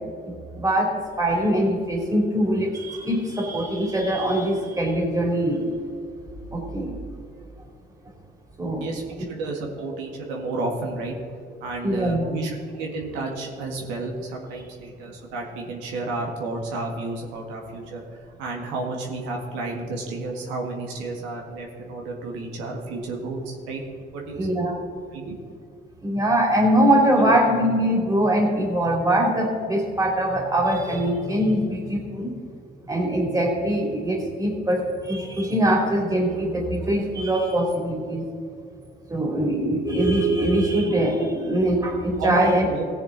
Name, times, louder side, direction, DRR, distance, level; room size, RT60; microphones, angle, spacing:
voice 1, 0.5-0.9 1.2-5.7 6.5-6.9 8.6-8.8 11.8-12.3 24.3-24.9 26.0-32.3 32.9-38.2 39.1-42.7, right 1 dB, 20° right, 0 dB, 3.0 m, -22 dB
voice 2, 9.3-11.1 11.6-23.8 24.1-24.5 25.1-25.3 27.2-27.3 42.2-42.9, right 3 dB, 90° right, 0 dB, 1.8 m, -31 dB
16.0 x 7.1 x 4.0 m, 2.3 s
supercardioid pair, 80°, 18 cm